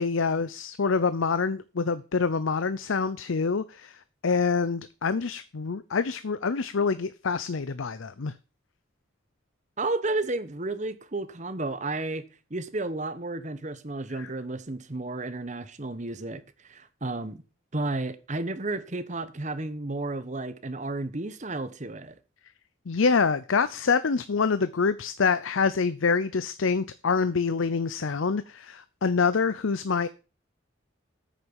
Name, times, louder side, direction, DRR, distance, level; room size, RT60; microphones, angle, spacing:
voice 1, 0.0-8.3 14.2-14.3 22.9-30.1, left 5 dB, 80° left, 0.6 m, -26 dB
voice 2, 9.8-12.2 12.5-17.4 17.7-22.1, right 2 dB, 35° right, 1.0 m, -32 dB
9.3 x 6.8 x 7.1 m
head